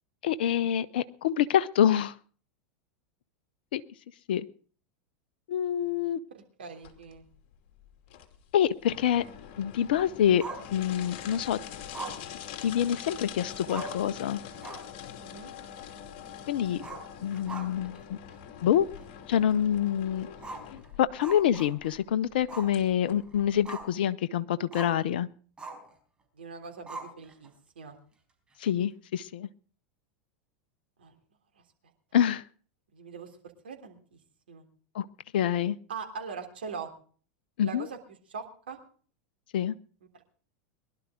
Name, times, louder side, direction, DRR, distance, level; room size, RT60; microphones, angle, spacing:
voice 1, 0.2-2.1 3.7-3.8 4.3-4.5 5.5-6.2 8.5-9.2 9.6-10.4 10.7-11.6 12.6-14.4 16.5-16.8 17.2-18.2 18.6-18.9 19.3-20.3 20.7-25.3 28.6-29.5 32.1-32.4 34.9-35.1 35.3-35.8 37.6-37.9 39.5-39.7, left 10 dB, 70° left, 14 dB, 0.7 m, -26 dB
voice 2, 6.3-7.3 15.2-15.5 26.3-27.9 31.0-31.2 31.5-31.6 32.9-33.4 33.6-34.2 34.5-34.7 35.9-36.9 37.6-38.0 38.3-38.8 40.1-40.2, right 5 dB, 80° right, 2 dB, 3.4 m, -42 dB
sound 1, 6.8-23.9, left 9 dB, 55° left, 2.5 m, -44 dB
Growling, 10.4-11.2 11.9-13.2 13.4-13.5 13.7-14.1 14.5-15.0 15.3-15.4 16.7-18.0 18.3-18.4 19.0-19.1 20.4-22.0 22.5-22.8 23.1-24.0 24.7-25.0 25.6-25.9 26.9-27.5, right 3 dB, 15° right, 4.8 m, -42 dB
22.0 x 11.5 x 3.8 m, 0.43 s
hypercardioid pair, 90°, 5 cm